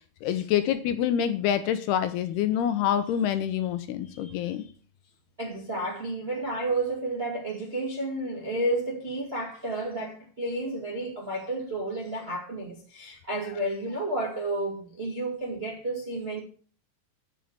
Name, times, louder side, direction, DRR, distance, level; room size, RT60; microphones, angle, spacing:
voice 1, 0.2-4.7, left 10 dB, 80° left, 2.5 m, -26 dB
voice 2, 5.4-16.4, right 1 dB, 55° right, 0.6 m, -31 dB
9.2 x 6.4 x 8.0 m
omnidirectional pair, 5.2 m